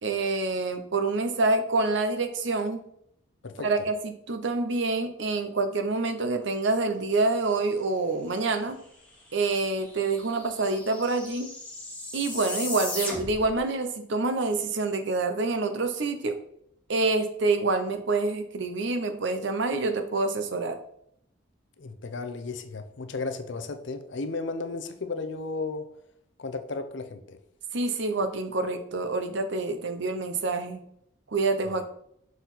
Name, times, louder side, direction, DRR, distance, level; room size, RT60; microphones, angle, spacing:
voice 1, 0.0-2.9 3.6-8.8 9.3-11.5 12.1-16.4 16.9-20.8 27.7-30.8 31.3-31.9, right 3 dB, 60° right, 8 dB, 0.7 m, -27 dB
sound 1, 9.1-9.2 9.4-13.6, left 2 dB, 5° left, 1.2 m, -37 dB
voice 2, 21.8-25.9 26.4-27.4 31.6-31.8, left 3 dB, 60° left, 7 dB, 0.6 m, -34 dB
6.2 x 4.0 x 4.1 m, 0.71 s
head